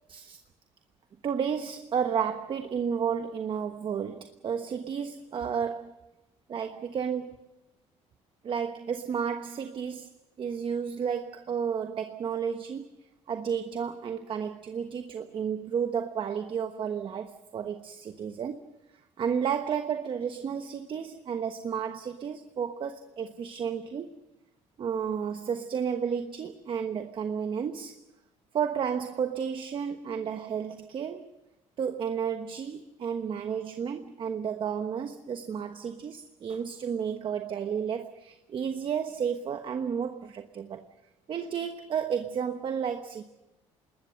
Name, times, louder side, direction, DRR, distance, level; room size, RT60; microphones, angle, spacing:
voice 1, 0.1-0.4 1.2-6.0 6.5-7.4 8.4-10.1 10.4-12.9 13.3-18.7 19.2-24.1 24.8-28.0 28.5-31.3 31.8-40.8 41.3-43.2, right 7 dB, 45° right, 1.2 m, -32 dB
26.0 x 20.5 x 6.4 m
cardioid pair, 105°, 12 cm